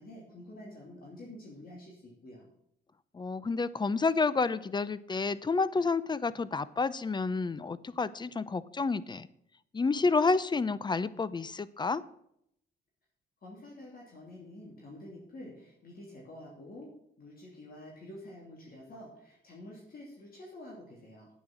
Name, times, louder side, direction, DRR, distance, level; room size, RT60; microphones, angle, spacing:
voice 1, 0.0-2.5 13.4-16.9 17.2-21.3, left 1 dB, 50° left, -2 dB, 2.9 m, -48 dB
voice 2, 3.1-9.3 9.7-12.0, left 4 dB, 20° left, 17 dB, 0.6 m, -29 dB
9.3 x 8.6 x 6.1 m, 0.74 s
cardioid pair, 90°, 20 cm